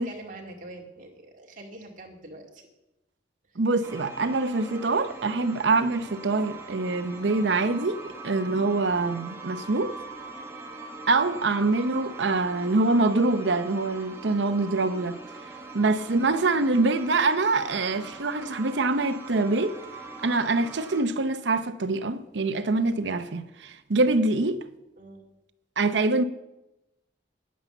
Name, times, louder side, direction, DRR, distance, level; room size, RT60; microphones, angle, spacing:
voice 1, 0.0-2.6 25.0-25.3, right 2 dB, 45° right, 2.2 m, -44 dB
voice 2, 3.6-10.0 11.1-15.2 15.7-19.8 20.2-24.6 25.8-26.2, right 3 dB, 80° right, 0.7 m, -25 dB
sound 1, 3.8-21.0, right 3 dB, 15° right, 1.4 m, -42 dB
10.0 x 9.4 x 7.0 m
head